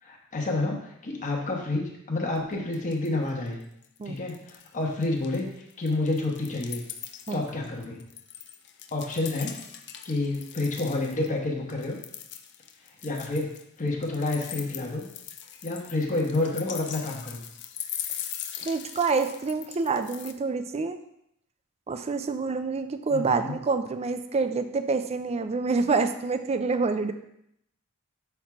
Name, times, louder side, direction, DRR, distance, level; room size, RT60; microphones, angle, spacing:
voice 1, 0.0-3.6 4.0-6.8 7.3-8.0 8.9-9.6 10.0-12.0 13.0-15.0 15.6-17.4 23.1-23.5, left 2 dB, 35° left, -1 dB, 1.1 m, -29 dB
sound 1, 2.4-2.5 2.7-3.3 3.6-4.7 5.0-11.3 11.7-20.3, left 10 dB, 55° left, 0.5 m, -41 dB
voice 2, 18.6-21.0 21.9-27.1, right 4 dB, 30° right, 9 dB, 0.4 m, -27 dB
7.0 x 4.6 x 3.5 m, 0.76 s
head